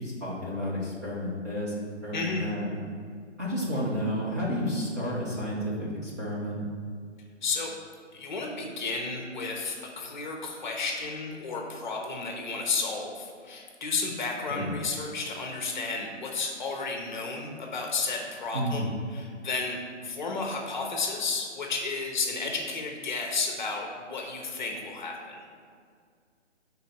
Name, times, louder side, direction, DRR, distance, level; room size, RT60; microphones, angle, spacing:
voice 1, 0.0-1.7 2.0-2.6 3.4-6.6 14.5-14.7 18.5-18.8, equal, 15° right, -8 dB, 0.6 m, -31 dB
voice 2, 2.1-2.5 7.4-7.7 8.1-25.4, left 4 dB, 40° left, 1 dB, 0.9 m, -32 dB
6.0 x 3.9 x 4.3 m, 2.1 s
figure-of-eight pair, 145°, 36 cm